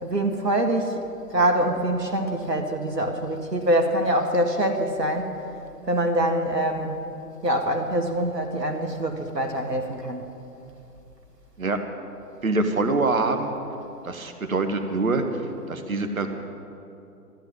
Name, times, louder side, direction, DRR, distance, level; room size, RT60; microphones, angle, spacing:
voice 1, 0.0-1.0 1.3-5.3 5.9-7.0 7.4-10.4, right 1 dB, 85° right, 4 dB, 1.8 m, -24 dB
voice 2, 12.4-13.5 14.0-16.3, right 3 dB, 60° right, 7 dB, 1.5 m, -25 dB
14.0 x 9.6 x 9.2 m, 2.7 s
figure-of-eight pair, 135°, 47 cm